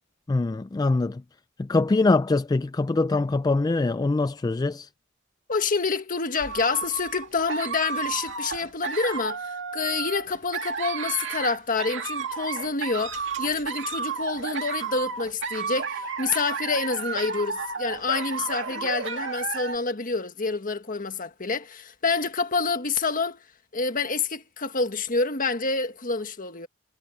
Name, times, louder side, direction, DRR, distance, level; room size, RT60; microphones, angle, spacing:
voice 1, 0.3-1.2 1.6-4.9, left 3 dB, 20° left, 0.3 m, -23 dB
voice 2, 5.5-23.4 23.7-26.7, left 4 dB, 45° left, 1.6 m, -27 dB
sound 1, 6.4-19.8, right 5 dB, 70° right, 2.3 m, -32 dB
head